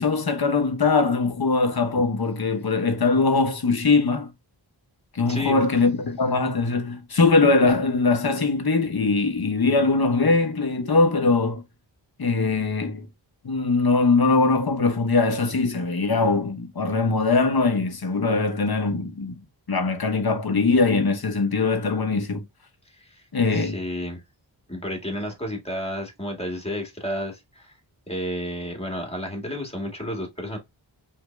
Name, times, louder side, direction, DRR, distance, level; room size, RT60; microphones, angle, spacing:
voice 1, 0.0-4.3 5.1-11.6 12.2-13.0 13.4-19.3 19.7-22.4 23.3-23.8, left 3 dB, 50° left, 1.0 m, -21 dB
voice 2, 5.2-5.6 22.8-23.2 23.5-24.2 24.7-27.8 28.1-30.6, equal, 15° left, 1.8 m, -31 dB
4.9 x 2.8 x 2.2 m
wide cardioid pair, 55°, 46 cm